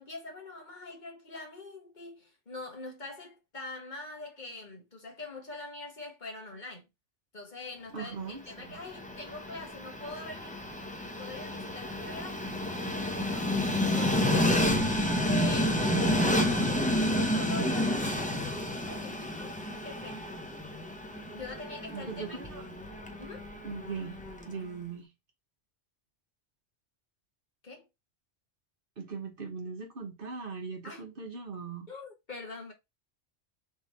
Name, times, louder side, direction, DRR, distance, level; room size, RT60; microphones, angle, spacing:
voice 1, 0.0-6.8 7.3-10.5 11.2-12.4 12.7-14.7 15.2-19.6 19.8-20.3 21.3-22.4 23.2-23.5 27.6-27.9 30.8-31.0 31.9-32.7, left 3 dB, 40° left, 1.5 m, -43 dB
voice 2, 7.9-8.8 21.9-22.7 23.6-24.2 24.5-25.1 29.0-31.9, right 5 dB, 50° right, 1.1 m, -40 dB
Train, 8.5-24.6, left 1 dB, 10° left, 0.6 m, -30 dB
3.6 x 3.2 x 4.1 m
omnidirectional pair, 1.2 m